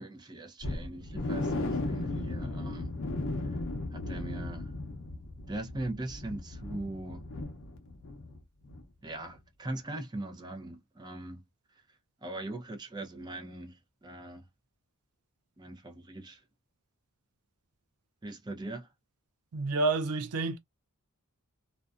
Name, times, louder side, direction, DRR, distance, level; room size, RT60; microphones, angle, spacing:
voice 1, 0.0-3.0 3.4-3.6 3.9-4.7 5.5-7.2 9.0-11.4 12.2-14.4 15.6-16.4 18.2-18.9, right 2 dB, 20° right, 0.5 m, -40 dB
sound 1, 0.6-8.4 8.6-8.8 9.2-9.3, left 2 dB, 60° left, 0.6 m, -36 dB
voice 2, 19.5-20.6, right 3 dB, 80° right, 0.5 m, -29 dB
2.5 x 2.1 x 2.3 m
head